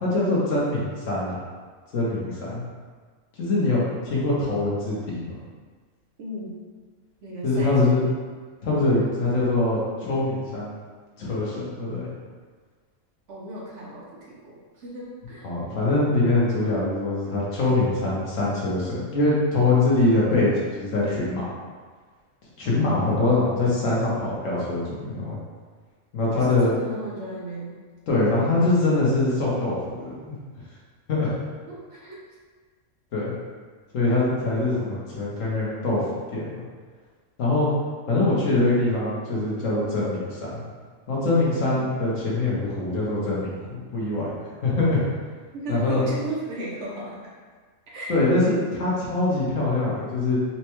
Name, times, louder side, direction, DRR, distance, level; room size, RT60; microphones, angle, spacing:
voice 1, 0.0-1.3 1.9-2.6 3.4-5.3 7.4-8.0 8.6-10.7 11.2-12.1 15.4-21.4 22.6-25.4 26.1-26.7 28.1-30.4 31.1-31.3 33.1-33.3 33.9-36.0 36.3-36.5 37.4-37.7 38.1-40.6 41.1-44.4 44.6-45.0 45.7-46.0 48.1-50.4, left 2 dB, 70° left, -6 dB, 1.3 m, -23 dB
voice 2, 6.2-6.6 7.2-8.0 13.3-15.5 22.6-23.2 26.3-27.8 31.7-32.2 45.5-47.3 47.9-48.1, right 1 dB, 60° right, -6 dB, 1.0 m, -35 dB
4.2 x 2.3 x 3.0 m, 1.5 s
omnidirectional pair, 1.4 m